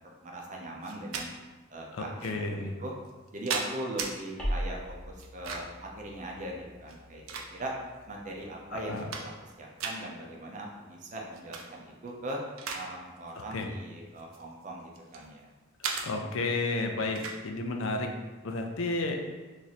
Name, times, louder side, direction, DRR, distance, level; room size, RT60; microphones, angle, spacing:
voice 1, 0.0-1.3 1.7-2.9 3.3-7.2 7.5-7.7 8.1-12.4 12.7-15.5, right 1 dB, 40° right, -1 dB, 0.6 m, -40 dB
sound 1, 0.8-1.3 2.2-2.3 3.0-4.1 5.2-5.8 6.8-7.9 8.4-8.5 8.8-9.5 9.8-10.0 11.3-11.7 12.1-12.9 13.2-13.4 14.2-15.3 15.8-16.1 17.1-17.4, right 5 dB, 85° right, 0.5 m, -36 dB
voice 2, 1.9-2.7 8.7-9.0 13.5-13.7 16.0-18.1 18.4-19.2, left 2 dB, 75° left, 4 dB, 0.5 m, -32 dB
sound 2, 4.4-9.2, equal, 5° left, 0.8 m, -40 dB
3.0 x 2.6 x 4.0 m, 1.2 s
head